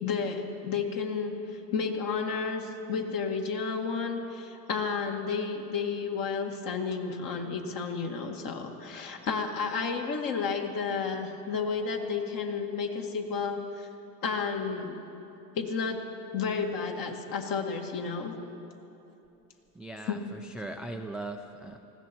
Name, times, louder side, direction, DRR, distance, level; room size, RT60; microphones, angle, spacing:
voice 1, 0.0-13.9 14.2-15.0 15.5-16.0 16.3-18.3 20.1-20.2, left 5 dB, 45° left, 3 dB, 2.1 m, -32 dB
voice 2, 19.8-21.8, right 2 dB, ahead, 6 dB, 0.4 m, -39 dB
19.5 x 16.0 x 4.5 m, 2.9 s
hypercardioid pair, 90°, 48 cm